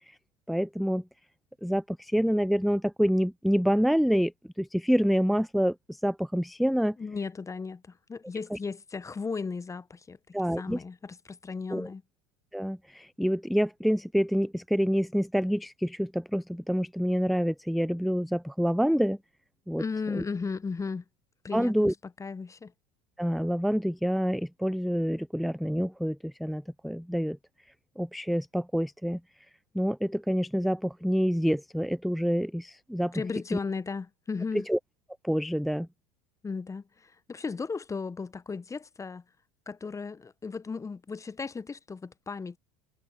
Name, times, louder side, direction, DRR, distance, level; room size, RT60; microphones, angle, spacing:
voice 1, 0.5-1.0 1.6-4.3 4.6-7.0 8.5-8.6 10.3-10.8 11.7-11.9 12.5-19.2 19.7-19.8 20.1-20.2 21.5-21.9 23.2-27.4 28.0-29.2 29.7-33.2 34.7-34.8 35.2-35.9, equal, ahead, 0.4 m, -27 dB
voice 2, 7.0-10.2 10.6-12.0 19.8-21.0 21.4-21.9 22.2-22.7 33.1-34.7 36.4-39.2 39.7-42.6, left 4 dB, 15° left, 0.8 m, -35 dB
hypercardioid pair, 80°, 18 cm